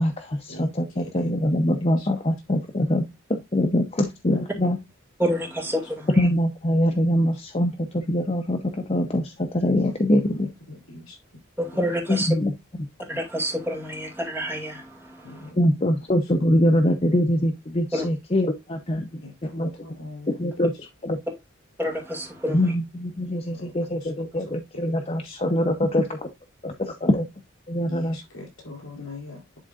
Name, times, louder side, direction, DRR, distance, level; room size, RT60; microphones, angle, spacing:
voice 1, 0.0-3.0 3.3-4.8 6.2-10.5 12.3-12.5 15.6-19.1 19.5-19.7 20.4-20.7 21.0-21.2 22.5-26.2 26.6-27.2 27.7-28.2, left 1 dB, 30° left, 0.7 m, -23 dB
voice 2, 5.2-6.3 11.6-12.3 13.1-15.5 17.9-18.1 21.8-22.7, equal, 10° right, 2.3 m, -28 dB
voice 3, 10.7-11.2 15.2-15.5 19.2-20.4 23.6-23.7 24.0-24.1 25.2-25.4 27.9-29.4, left 2 dB, 85° left, 4.0 m, -41 dB
11.0 x 3.8 x 2.5 m
head